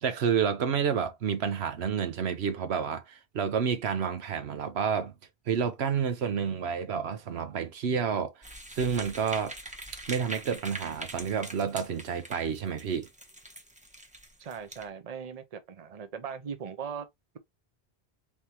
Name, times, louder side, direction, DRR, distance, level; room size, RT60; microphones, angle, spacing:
voice 1, 0.0-5.1 5.5-9.5 10.1-13.1, right 7 dB, 80° right, 1.0 m, -29 dB
sound 1, 8.4-14.9, right 1 dB, 10° right, 0.7 m, -43 dB
voice 2, 14.4-17.1, right 7 dB, 40° right, 0.7 m, -39 dB
4.2 x 3.6 x 2.9 m
omnidirectional pair, 1.1 m